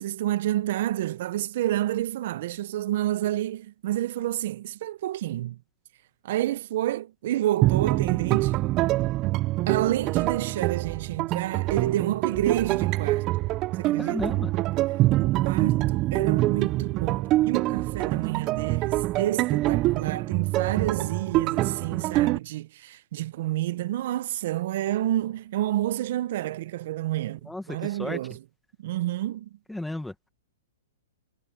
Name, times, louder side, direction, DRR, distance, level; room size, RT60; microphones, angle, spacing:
voice 1, 0.0-5.6 6.2-8.6 9.7-13.3 13.8-14.3 15.2-28.4 28.8-29.5, right 14 dB, 55° right, 1.2 m, -29 dB
sound 1, 7.6-22.4, right 17 dB, 35° right, 0.9 m, -25 dB
voice 2, 14.0-14.5 27.5-28.2 29.7-30.3, left 1 dB, 5° left, 2.1 m, -33 dB
hypercardioid pair, 130°, 0 cm